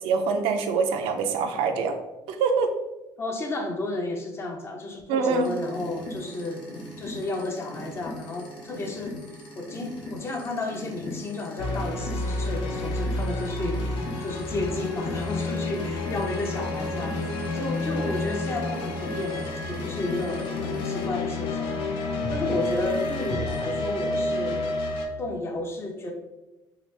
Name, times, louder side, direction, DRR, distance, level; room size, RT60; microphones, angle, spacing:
voice 1, 0.0-2.0 2.3-2.7 5.1-5.5, right 5 dB, 90° right, 5 dB, 0.4 m, -24 dB
voice 2, 3.2-6.7 7.0-9.2 9.6-21.7 22.3-24.6 25.2-26.1, left 2 dB, 30° left, 2 dB, 0.6 m, -32 dB
sound 1, 5.4-21.0 22.2-23.6, left 1 dB, 65° left, 0.9 m, -40 dB
sound 2, 11.6-25.1, left 2 dB, 85° left, 0.5 m, -30 dB
3.1 x 2.8 x 3.2 m, 0.99 s
cardioid pair, 135°, 9 cm